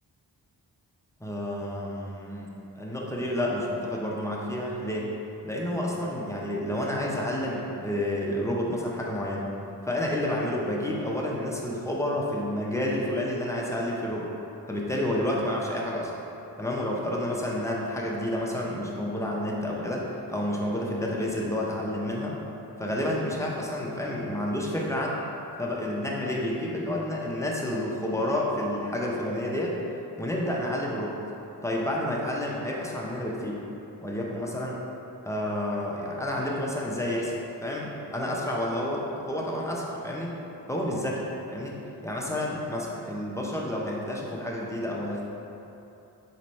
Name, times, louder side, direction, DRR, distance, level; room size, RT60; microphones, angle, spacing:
voice 1, 1.2-2.5 2.8-5.1 5.4-9.4 9.8-14.3 14.7-16.1 16.6-20.0 20.3-22.3 22.8-25.1 25.6-29.8 30.2-31.2 31.6-33.6 34.0-34.8 35.2-37.3 37.6-40.3 40.7-41.7 42.0-45.2, left 1 dB, 5° left, -3 dB, 0.8 m, -30 dB
4.0 x 3.1 x 4.2 m, 3.0 s
cardioid pair, 45°, 41 cm